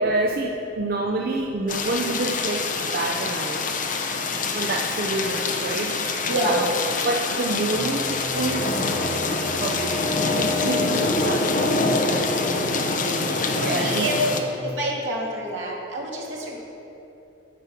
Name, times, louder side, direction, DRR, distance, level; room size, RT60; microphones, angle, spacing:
voice 1, 0.0-3.6 4.5-6.7 7.0-12.6 13.6-14.1, right 2 dB, 50° right, 0 dB, 0.6 m, -28 dB
sound 1, 1.7-14.4, left 3 dB, 40° left, 0.7 m, -25 dB
voice 2, 6.3-6.6 12.5-12.9 13.6-14.2 14.6-16.6, right 1 dB, 75° right, -3 dB, 2.1 m, -28 dB
sound 2, 7.7-14.6, left 2 dB, 10° left, 1.2 m, -33 dB
9.3 x 7.3 x 5.9 m, 2.8 s
head